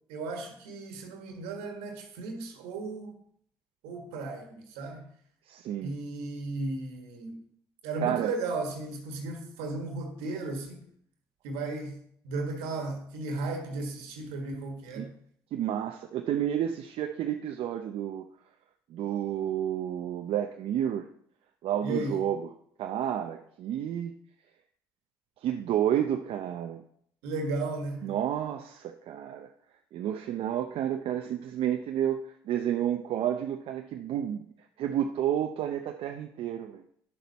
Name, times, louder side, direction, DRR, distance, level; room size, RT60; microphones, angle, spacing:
voice 1, 0.1-3.1 3.8-5.1 5.8-7.4 7.8-10.8 11.4-15.1 21.8-22.2 27.2-28.1, right 2 dB, 90° right, 1.7 m, -35 dB
voice 2, 5.5-5.9 8.0-8.3 15.0-15.1 15.5-18.2 18.9-21.0 21.6-22.5 22.8-24.2 25.4-26.8 28.0-29.5 29.9-34.4 34.8-36.8, right 10 dB, 70° right, 0.6 m, -30 dB
10.0 x 6.9 x 4.2 m
supercardioid pair, 60°, 10 cm